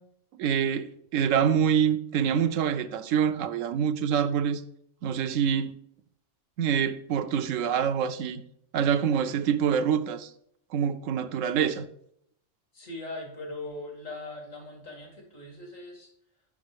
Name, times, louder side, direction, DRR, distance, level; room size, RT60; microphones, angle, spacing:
voice 1, 0.4-4.6 5.0-5.8 6.6-8.4 8.7-10.3 10.7-11.9, right 8 dB, 80° right, 1.0 m, -26 dB
voice 2, 12.7-16.1, left 2 dB, 90° left, 2.7 m, -40 dB
6.3 x 6.0 x 5.1 m
omnidirectional pair, 1.3 m